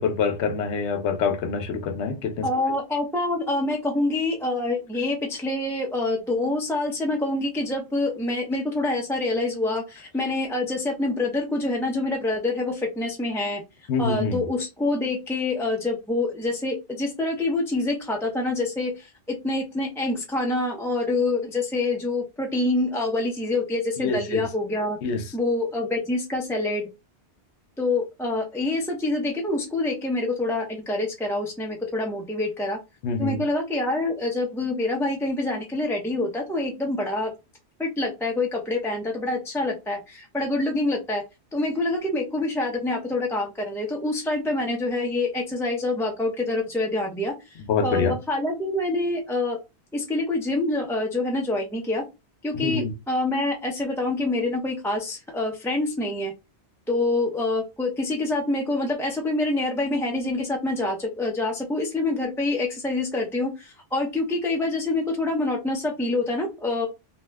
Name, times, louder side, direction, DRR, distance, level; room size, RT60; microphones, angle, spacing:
voice 1, 0.0-2.5 13.9-14.4 24.0-24.4 25.0-25.2 33.0-33.4 47.7-48.2 52.5-52.9, left 5 dB, 75° left, 0.9 m, -25 dB
voice 2, 2.4-13.6 14.0-19.1 19.4-25.0 25.3-26.9 27.8-32.8 33.2-37.3 37.8-41.2 41.5-49.6 49.9-52.0 52.4-56.3 56.9-66.9, left 2 dB, 5° left, 0.4 m, -26 dB
2.7 x 2.1 x 3.3 m
omnidirectional pair, 1.2 m